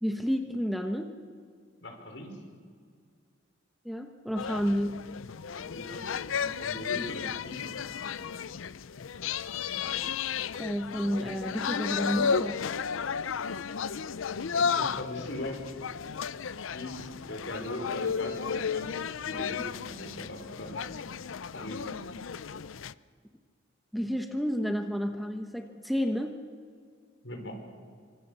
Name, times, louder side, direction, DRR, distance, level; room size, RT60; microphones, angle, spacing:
voice 1, 0.0-1.1 3.8-5.0 10.6-12.6 23.9-26.4, equal, ahead, 4 dB, 1.1 m, -30 dB
voice 2, 1.8-2.4 5.5-7.7 14.3-15.6 16.6-20.8 21.5-21.9 27.2-27.5, left 1 dB, 65° left, 3 dB, 4.8 m, -40 dB
sound 1, 4.4-22.9, left 6 dB, 85° left, 0.5 m, -33 dB
26.5 x 25.0 x 6.9 m, 2.1 s
head